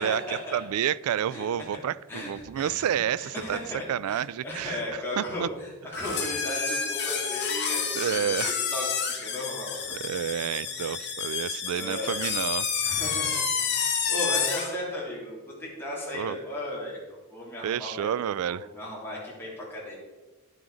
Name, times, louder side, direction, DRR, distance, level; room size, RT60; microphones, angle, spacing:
voice 1, 0.0-0.6 1.3-1.5 1.7-1.8 2.1-10.9 11.7-12.2 12.8-18.1 18.5-20.0, left 1 dB, 10° left, -6 dB, 3.2 m, -36 dB
voice 2, 0.5-3.6 3.9-4.8 5.2-5.5 7.9-8.5 9.9-12.7 16.1-16.4 17.6-18.7, right 9 dB, 80° right, 21 dB, 0.3 m, -29 dB
sound 1, 5.9-14.8, left 6 dB, 50° left, 1.6 m, -29 dB
10.5 x 7.7 x 4.9 m, 1.2 s
head